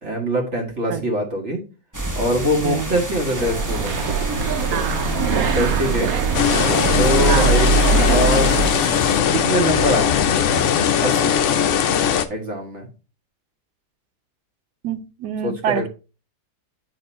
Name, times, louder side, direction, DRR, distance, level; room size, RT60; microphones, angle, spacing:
voice 1, 0.0-1.6 2.1-4.1 5.2-6.1 6.9-8.5 9.3-10.7 11.0-11.6 12.3-12.9 15.4-15.9, equal, 45° right, 1.5 m, -24 dB
sound 1, 1.9-9.2, right 1 dB, 15° right, 0.6 m, -30 dB
sound 2, 3.4-8.7, right 4 dB, 65° right, 1.2 m, -21 dB
voice 2, 4.7-5.4 7.3-7.7 14.8-15.9, right 9 dB, 80° right, 1.3 m, -26 dB
sound 3, 6.3-12.3, left 8 dB, 65° left, 0.8 m, -19 dB
9.0 x 3.0 x 4.2 m
omnidirectional pair, 1.8 m